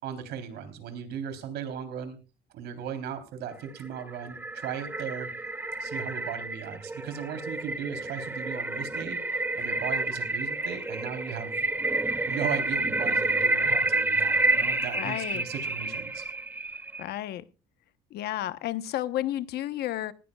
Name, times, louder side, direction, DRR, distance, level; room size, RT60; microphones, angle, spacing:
voice 1, 0.0-2.2 2.5-5.3 5.8-11.6 12.3-16.2, right 8 dB, 80° right, 8 dB, 3.6 m, -37 dB
sound 1, 3.7-17.1, right 2 dB, 10° right, 0.7 m, -29 dB
voice 2, 14.9-15.5 17.0-17.4 18.1-20.1, left 13 dB, 70° left, 12 dB, 1.1 m, -32 dB
19.0 x 15.0 x 2.4 m, 0.33 s
cardioid pair, 110°, 17 cm